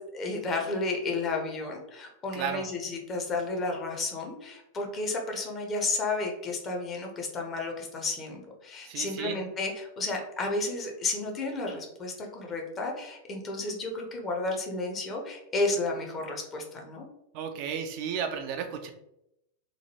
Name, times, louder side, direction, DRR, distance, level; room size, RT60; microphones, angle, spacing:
voice 1, 0.0-17.1, left 3 dB, 25° left, 1 dB, 0.7 m, -32 dB
voice 2, 2.3-2.6 8.8-9.4 17.3-18.9, right 7 dB, 45° right, 5 dB, 0.3 m, -33 dB
3.0 x 2.3 x 2.8 m, 0.84 s
figure-of-eight pair, 90°, 0 cm